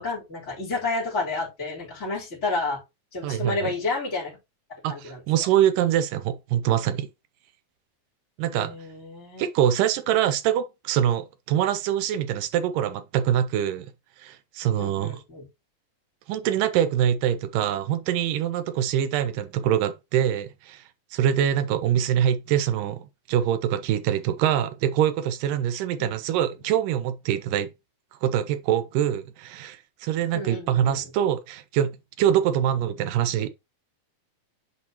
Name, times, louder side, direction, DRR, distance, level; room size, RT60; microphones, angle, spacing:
voice 1, 0.0-2.8 3.1-4.3 4.9-5.2 8.5-9.4 14.8-15.4 26.0-26.2 30.3-31.0, left 3 dB, 20° left, 3.9 m, -30 dB
voice 2, 3.2-3.7 4.8-7.1 8.4-8.8 9.4-13.9 14.2-15.1 16.3-20.8 21.1-27.7 28.2-33.5, right 10 dB, 75° right, 2.1 m, -24 dB
8.4 x 5.2 x 2.9 m
omnidirectional pair, 4.2 m